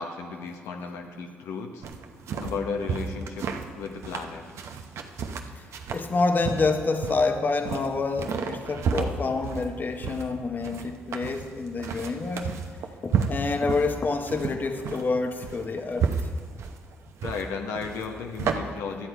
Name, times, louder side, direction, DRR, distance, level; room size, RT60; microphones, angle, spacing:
voice 1, 0.0-1.8 2.4-3.5 3.7-4.4 17.2-19.1, left 5 dB, 85° left, 3 dB, 0.8 m, -34 dB
sound 1, 1.8-18.5, right 6 dB, 70° right, 0.7 m, -32 dB
voice 2, 5.9-12.6 13.0-16.1, left 3 dB, 40° left, 7 dB, 0.9 m, -27 dB
12.0 x 7.8 x 4.6 m, 2.1 s
supercardioid pair, 65°, 5 cm